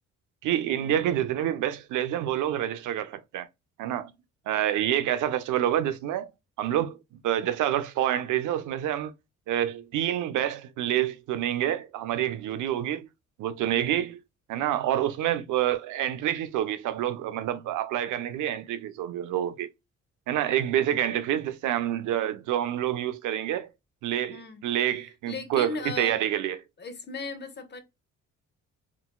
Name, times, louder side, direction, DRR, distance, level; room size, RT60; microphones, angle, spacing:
voice 1, 0.4-3.5 3.8-4.1 4.5-6.3 6.6-7.0 7.2-9.1 9.5-13.1 13.4-14.2 14.5-19.7 20.3-23.7 24.0-26.6, right 11 dB, 80° right, 0.5 m, -27 dB
voice 2, 24.3-24.6 25.3-26.2 26.8-27.8, left 4 dB, 35° left, 0.8 m, -37 dB
3.9 x 2.2 x 2.2 m
cardioid pair, 90°, 30 cm